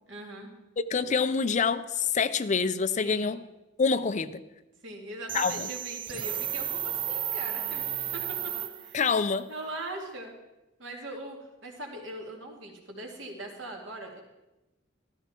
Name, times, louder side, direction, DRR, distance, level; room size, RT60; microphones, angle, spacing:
voice 1, 0.1-0.5 3.0-3.3 4.8-7.8 8.1-8.5 8.8-9.0 9.5-10.3 10.8-14.2, right 2 dB, 75° right, 0 dB, 2.5 m, -40 dB
voice 2, 0.9-3.4 3.8-4.4 5.3-5.7 8.9-9.5, left 5 dB, 40° left, 10 dB, 0.5 m, -26 dB
sound 1, 5.3-9.2, right 10 dB, 25° right, 0.4 m, -33 dB
14.5 x 13.5 x 4.5 m, 0.99 s
head